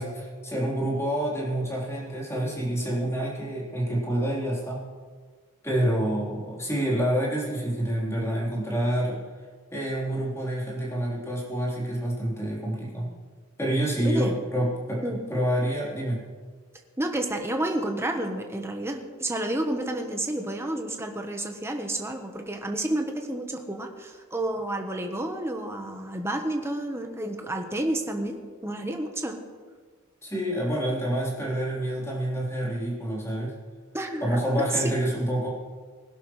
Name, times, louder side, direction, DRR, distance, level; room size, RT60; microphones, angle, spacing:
voice 1, 0.0-4.8 5.6-9.2 9.7-13.1 13.6-16.2 30.2-33.5 34.2-35.5, right 1 dB, 15° left, -5 dB, 3.7 m, -27 dB
voice 2, 14.0-14.3 15.0-15.2 17.0-29.4 33.9-34.4 34.7-34.9, right 1 dB, 10° right, 3 dB, 1.1 m, -30 dB
20.0 x 11.5 x 3.2 m, 1.6 s
head